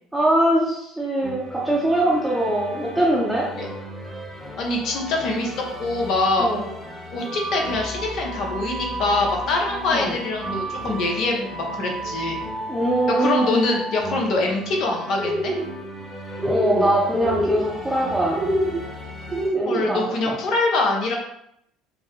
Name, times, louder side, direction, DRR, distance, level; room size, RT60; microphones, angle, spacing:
voice 1, 0.1-3.5 6.4-6.7 9.9-10.1 12.7-13.6 16.4-18.4 19.5-20.4, right 1 dB, 10° right, -6 dB, 0.9 m, -22 dB
sound 1, 1.2-19.5, right 1 dB, 10° left, 1.1 m, -34 dB
voice 2, 4.6-6.5 7.1-12.4 13.2-15.5 19.7-21.2, left 2 dB, 60° left, 1 dB, 0.9 m, -24 dB
sound 2, 15.1-15.6 16.4-16.9 17.1-17.6 18.3-18.8 19.3-19.8, equal, 40° right, 1.0 m, -24 dB
4.1 x 2.2 x 3.0 m, 0.75 s
hypercardioid pair, 75°, 0 cm